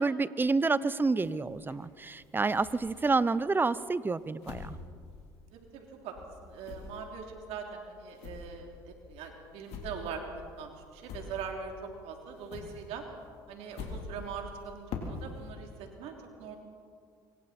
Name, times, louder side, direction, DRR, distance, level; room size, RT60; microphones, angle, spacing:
voice 1, 0.0-4.7, right 3 dB, 20° right, 17 dB, 0.8 m, -28 dB
sound 1, 1.2-3.3 3.8-5.9 6.1-11.8 12.1-15.5, left 4 dB, 60° left, 3.6 m, -45 dB
voice 2, 5.5-6.1 6.4-13.0 13.5-16.6, right 6 dB, 70° right, 2 dB, 3.3 m, -42 dB
26.0 x 23.0 x 4.4 m, 2.2 s
hypercardioid pair, 75°, 11 cm